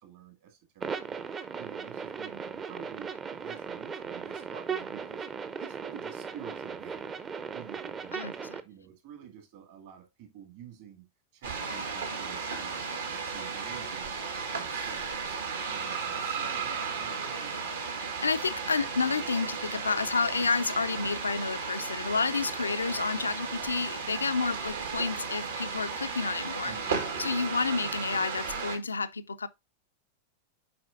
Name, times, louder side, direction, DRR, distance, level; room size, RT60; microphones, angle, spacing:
voice 1, 0.0-5.3 5.6-7.2 7.5-11.1 11.3-17.5 26.6-27.0, right 9 dB, 50° right, 2.2 m, -49 dB
sound 1, 0.8-8.6, right 6 dB, 20° right, 0.6 m, -37 dB
sound 2, 11.4-28.8, right 5 dB, 65° right, 1.5 m, -35 dB
voice 2, 18.2-26.7 27.2-29.5, left 4 dB, 75° left, 0.4 m, -30 dB
7.6 x 4.9 x 2.5 m
figure-of-eight pair, 90°, 0 cm